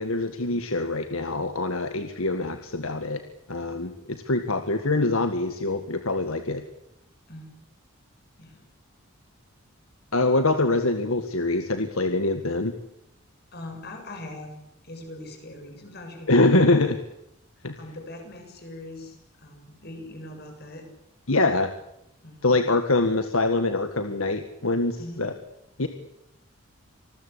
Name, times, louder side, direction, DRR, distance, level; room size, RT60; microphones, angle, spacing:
voice 1, 0.0-3.2 3.5-6.6 10.1-12.7 16.3-17.0 17.6-17.7 21.3-21.7 22.4-25.3 25.8-25.9, left 2 dB, 70° left, 8 dB, 1.8 m, -24 dB
voice 2, 13.5-14.5 14.8-16.9 17.7-20.9 22.2-22.6 25.0-25.2, left 1 dB, 45° left, 4 dB, 7.4 m, -41 dB
27.0 x 20.5 x 8.5 m, 0.77 s
head